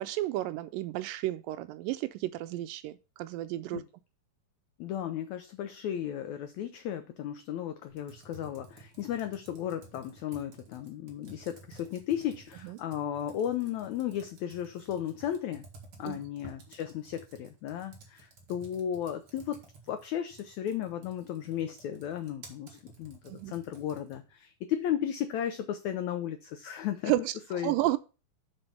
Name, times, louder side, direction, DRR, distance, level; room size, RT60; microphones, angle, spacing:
voice 1, 0.0-3.8 12.6-12.8 16.0-16.2 23.3-23.5 27.1-27.3 27.6-28.0, right 15 dB, 80° right, 2.1 m, -32 dB
voice 2, 4.8-15.6 16.0-19.6 19.9-27.1 27.5-28.0, left 10 dB, 85° left, 1.6 m, -35 dB
Computer keyboard, 7.9-24.3, right 4 dB, 45° right, 2.3 m, -54 dB
7.7 x 4.6 x 5.7 m
omnidirectional pair, 4.1 m